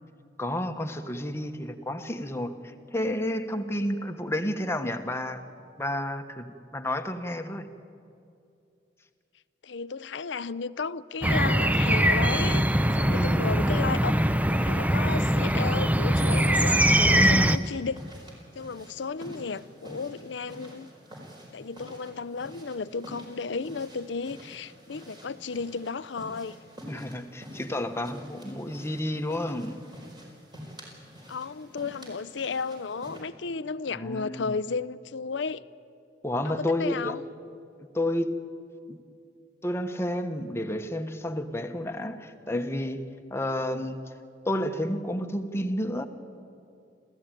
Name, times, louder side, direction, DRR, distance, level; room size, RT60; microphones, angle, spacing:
voice 1, 0.4-5.4 5.8-7.7 13.1-13.4 17.1-17.6 26.9-29.8 33.9-34.6 36.2-37.2 37.9-38.4 38.9-39.0 39.6-43.0 43.3-44.0 44.4-46.1, left 1 dB, 15° left, 6 dB, 1.3 m, -30 dB
voice 2, 9.6-14.1 14.5-18.0 18.6-20.9 21.5-26.6 31.3-35.6 36.4-37.2, left 4 dB, 90° left, 16 dB, 0.6 m, -33 dB
sound 1, 11.2-17.6, right 1 dB, 10° right, 0.6 m, -22 dB
sound 2, 17.5-33.2, equal, 25° right, 4.9 m, -48 dB
27.0 x 15.5 x 9.1 m, 2.5 s
head